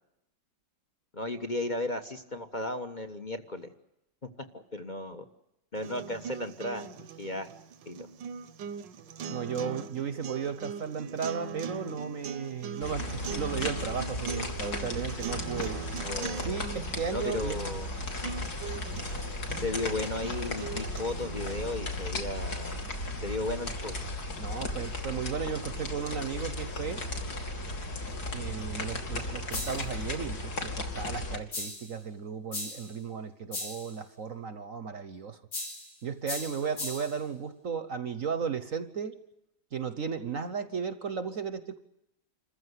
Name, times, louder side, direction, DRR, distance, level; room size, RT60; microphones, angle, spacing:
voice 1, 1.1-3.7 4.5-5.2 5.7-7.5 7.8-8.1 16.0-16.6 17.1-17.9 19.5-22.8 23.2-23.9 36.6-36.7, left 2 dB, 25° left, 7 dB, 1.3 m, -35 dB
sound 1, 5.7-21.8, right 6 dB, 70° right, 1.7 m, -41 dB
voice 2, 9.3-15.8 16.3-17.6 24.4-27.0 28.3-35.4 36.0-39.2 39.7-41.8, right 6 dB, 50° right, 11 dB, 1.3 m, -35 dB
sound 2, 12.8-31.4, left 2 dB, 55° left, 3.2 m, -35 dB
sound 3, 29.5-29.9 31.5-31.9 32.5-32.9 33.5-33.9 35.5-35.9 36.3-37.2, left 2 dB, 70° left, 5.8 m, -37 dB
28.0 x 15.0 x 9.7 m, 0.86 s
omnidirectional pair, 2.0 m